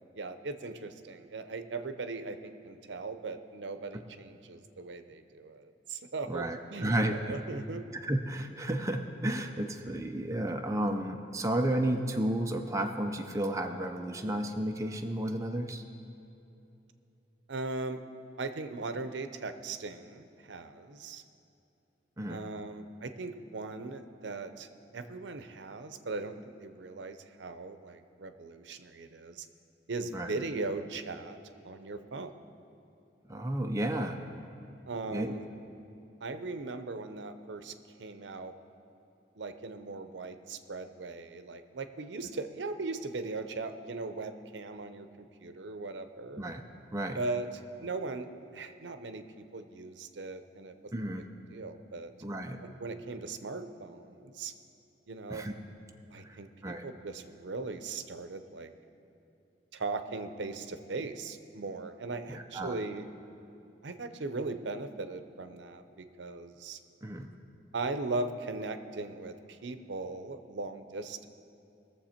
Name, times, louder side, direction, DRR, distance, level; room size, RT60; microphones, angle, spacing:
voice 1, 0.1-7.9 9.8-10.0 17.5-18.0 18.4-21.2 22.3-24.7 24.9-29.5 29.9-31.4 31.6-32.3 34.9-35.4 36.2-37.7 38.0-38.5 39.4-46.5 47.2-47.5 47.8-49.2 49.5-51.1 51.5-52.1 52.8-54.5 55.1-55.5 56.1-58.7 59.7-63.0 63.8-66.8 67.7-71.3, right 3 dB, 85° right, 10 dB, 0.7 m, -39 dB
voice 2, 6.3-7.4 8.0-15.8 22.2-22.4 30.1-30.3 33.3-34.2 35.1-35.3 46.4-46.6 46.9-47.2 50.9-51.3 52.2-52.6 55.3-55.5 56.2-56.4 56.6-56.8 62.3-62.8 67.0-67.3, right 1 dB, 15° right, 3 dB, 0.5 m, -32 dB
20.5 x 7.1 x 4.4 m, 2.9 s
head